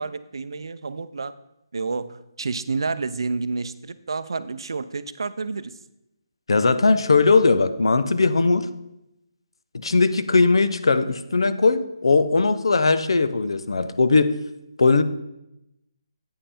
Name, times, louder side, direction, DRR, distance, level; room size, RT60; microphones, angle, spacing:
voice 1, 0.0-1.3 1.7-5.7, right 4 dB, 70° right, 13 dB, 0.4 m, -29 dB
voice 2, 6.5-8.7 9.8-14.4 14.8-15.0, left 3 dB, 90° left, 12 dB, 0.6 m, -19 dB
8.7 x 5.4 x 4.2 m, 0.87 s
hypercardioid pair, 180°, 3 cm